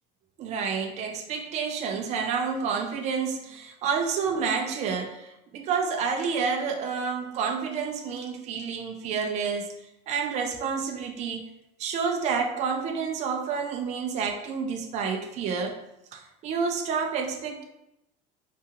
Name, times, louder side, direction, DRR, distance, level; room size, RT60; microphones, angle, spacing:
voice 1, 0.4-9.7 10.1-11.5 11.8-15.8 16.1-17.6, right 5 dB, 35° right, 3 dB, 0.4 m, -29 dB
2.7 x 2.4 x 2.8 m, 0.87 s
cardioid pair, 130°, 19 cm